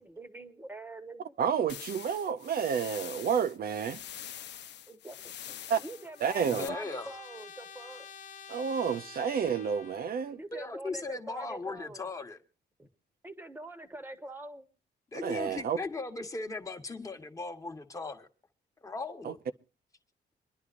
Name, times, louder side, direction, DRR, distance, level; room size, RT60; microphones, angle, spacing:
voice 1, 0.0-1.4 4.9-5.2 5.5-8.1 10.3-12.1 12.8-12.9 13.2-14.7, right 2 dB, 10° right, 1.2 m, -45 dB
voice 2, 1.4-4.0 5.7-5.8 6.2-6.7 8.5-10.4 15.1-15.8 19.2-19.3, right 7 dB, 55° right, 0.6 m, -30 dB
sound 1, 1.7-6.7, left 10 dB, 80° left, 0.8 m, -45 dB
Trumpet, 5.5-10.4, left 7 dB, 45° left, 0.6 m, -50 dB
voice 3, 6.4-7.1 10.5-12.4 15.1-18.3 18.8-19.4, left 3 dB, 20° left, 1.3 m, -38 dB
26.0 x 11.0 x 2.5 m
wide cardioid pair, 175°, 18 cm